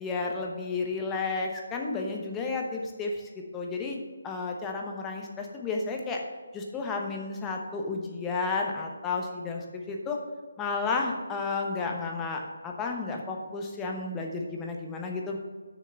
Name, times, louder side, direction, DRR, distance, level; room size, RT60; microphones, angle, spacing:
voice 1, 0.0-3.2 3.5-6.2 6.5-10.2 10.6-15.4, left 4 dB, 15° left, 1 dB, 1.0 m, -32 dB
6.7 x 6.4 x 6.5 m, 1.4 s
figure-of-eight pair, 150°, 0 cm